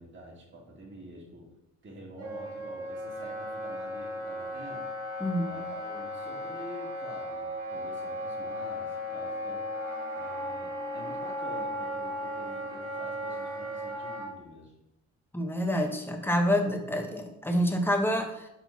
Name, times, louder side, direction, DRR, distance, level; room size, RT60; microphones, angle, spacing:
voice 1, 0.0-1.5 1.8-4.9 5.5-9.7 10.1-14.7, right 1 dB, 40° right, -2 dB, 1.9 m, -47 dB
Wind instrument woodwind instrument, 2.2-14.3, equal, 85° right, 2.2 m, -36 dB
voice 2, 5.2-5.5 15.3-18.5, equal, 5° left, 3 dB, 1.0 m, -27 dB
4.7 x 3.8 x 5.6 m, 0.85 s
cardioid pair, 90°, 30 cm